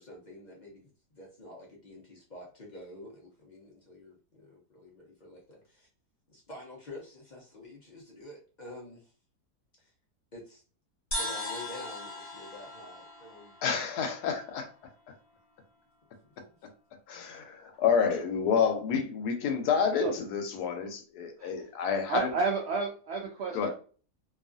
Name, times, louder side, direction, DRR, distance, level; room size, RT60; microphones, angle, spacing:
voice 1, 0.0-5.9 6.3-9.1 9.8-9.9 10.3-10.6 11.2-13.6 16.2-16.6, left 1 dB, 65° left, 0.4 m, -48 dB
sound 1, 11.1-14.6, left 1 dB, 20° left, 1.1 m, -39 dB
voice 2, 13.6-14.7 17.1-22.3 23.5-23.7, left 6 dB, 90° left, 1.2 m, -29 dB
voice 3, 22.1-23.7, right 4 dB, 75° right, 0.6 m, -31 dB
2.8 x 2.4 x 2.5 m
omnidirectional pair, 1.7 m